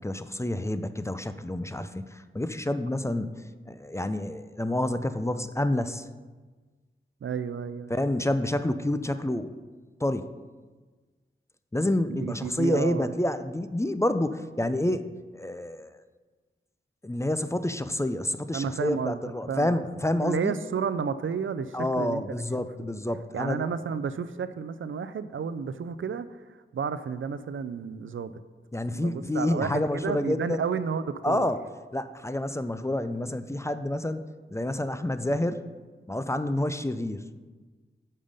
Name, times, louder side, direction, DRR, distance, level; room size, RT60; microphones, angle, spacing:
voice 1, 0.0-2.1 2.3-3.3 3.7-6.0 7.9-9.5 10.0-10.3 11.7-15.1 15.3-15.9 17.0-20.5 21.7-23.6 28.7-30.6 31.2-31.6 31.9-34.2 34.5-35.7 36.1-37.2, left 1 dB, 15° left, 11 dB, 0.4 m, -28 dB
voice 2, 7.2-8.0 12.1-13.1 18.5-19.9 20.2-22.2 22.6-22.7 23.3-26.3 26.7-28.3 28.7-31.5, right 6 dB, 75° right, 13 dB, 0.4 m, -31 dB
6.6 x 5.5 x 5.1 m, 1.4 s
cardioid pair, 40°, 21 cm